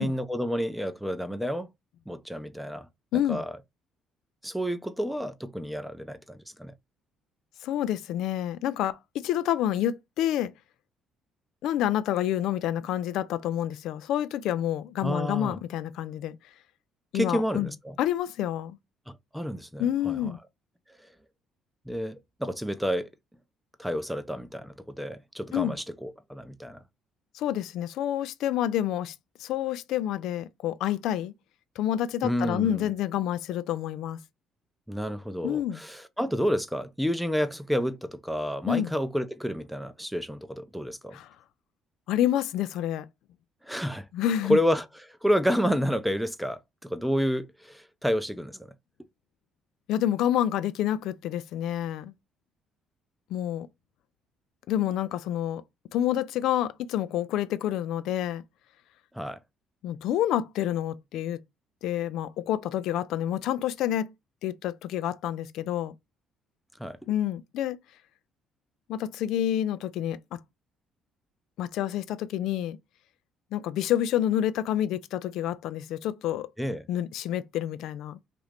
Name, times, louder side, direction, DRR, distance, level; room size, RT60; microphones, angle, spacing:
voice 1, 0.0-1.7 2.1-2.9 3.3-3.5 4.4-6.7 15.0-15.6 17.1-18.0 19.1-20.3 21.9-23.1 23.8-26.8 32.2-32.9 34.9-41.2 43.6-44.1 44.5-48.7 59.1-59.4 66.8-67.0 76.6-76.8, equal, ahead, 0.5 m, -30 dB
voice 2, 3.1-3.4 7.6-10.5 11.6-16.4 17.1-17.7 18.0-18.8 19.8-20.4 25.5-25.8 27.3-29.1 29.4-31.3 31.8-34.2 35.4-35.8 38.7-38.9 41.1-41.3 42.1-43.1 44.1-44.6 49.9-52.1 53.3-53.7 54.7-55.6 55.9-58.4 59.8-61.4 61.8-64.1 64.4-65.9 67.1-67.8 68.9-70.4 71.6-72.8 73.5-76.5 76.9-78.2, left 11 dB, 75° left, 0.3 m, -28 dB
2.8 x 2.5 x 3.3 m
supercardioid pair, 75°, 0 cm